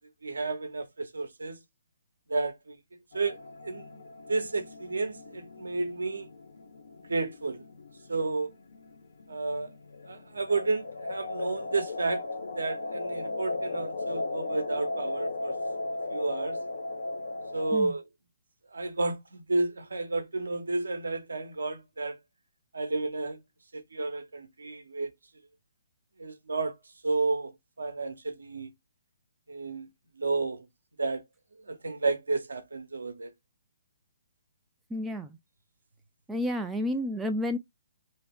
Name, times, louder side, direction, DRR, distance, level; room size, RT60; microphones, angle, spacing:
voice 1, 0.2-1.6 2.3-2.7 3.1-3.4 3.6-3.8 4.3-6.3 7.1-7.6 8.1-8.5 9.3-9.7 10.1-12.2 12.6-15.5 16.1-16.6 17.5-18.0 18.7-22.2 22.7-23.4 23.7-25.1 26.2-26.8 27.0-27.5 27.8-28.7 29.5-29.9 30.2-30.6 31.0-31.2 31.7-33.3, right 3 dB, 90° right, 0.8 m, -31 dB
sound 1, 3.1-17.8, left 2 dB, 75° left, 0.6 m, -37 dB
voice 2, 34.9-35.4 36.3-37.6, left 1 dB, 5° right, 0.4 m, -30 dB
2.8 x 2.2 x 3.4 m
hypercardioid pair, 145°, 0 cm